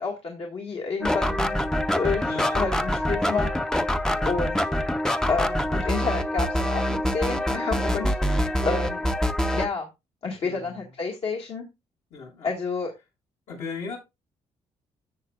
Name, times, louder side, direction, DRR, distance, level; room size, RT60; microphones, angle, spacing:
voice 1, 0.0-1.6 1.9-3.5 4.2-4.6 5.3-9.0 9.5-9.9 10.2-11.7 12.4-12.9, left 4 dB, 60° left, 1.8 m, -29 dB
sound 1, 1.0-9.7, left 1 dB, 5° left, 0.6 m, -25 dB
voice 2, 2.3-2.9 10.4-10.8 12.1-12.5 13.5-14.0, left 5 dB, 75° left, 5.9 m, -37 dB
13.5 x 7.1 x 2.4 m
cardioid pair, 110°, 12 cm